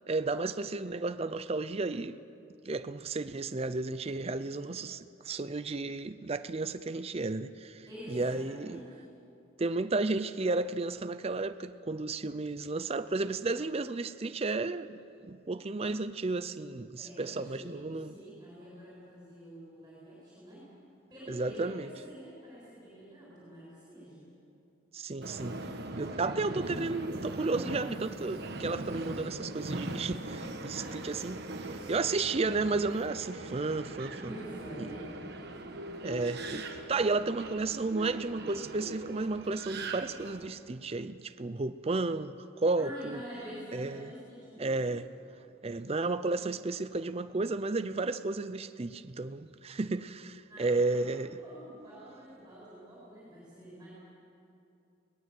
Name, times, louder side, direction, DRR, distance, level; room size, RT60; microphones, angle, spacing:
voice 1, 0.1-2.2 2.6-8.8 9.6-18.1 21.3-21.9 24.9-25.6 26.0-34.3 34.8-34.9 36.0-43.2 43.7-44.1 44.6-45.1 45.6-51.3, right 3 dB, 30° right, 0.5 m, -33 dB
voice 2, 7.9-9.0 17.0-20.6 21.1-24.2 30.7-31.1 31.7-31.9 34.2-35.1 42.7-45.0 50.5-51.1 51.4-53.9, equal, 15° right, 7.7 m, -47 dB
Subway metro underground, 25.2-40.5, right 2 dB, 50° right, 1.4 m, -40 dB
23.5 x 18.5 x 7.7 m
head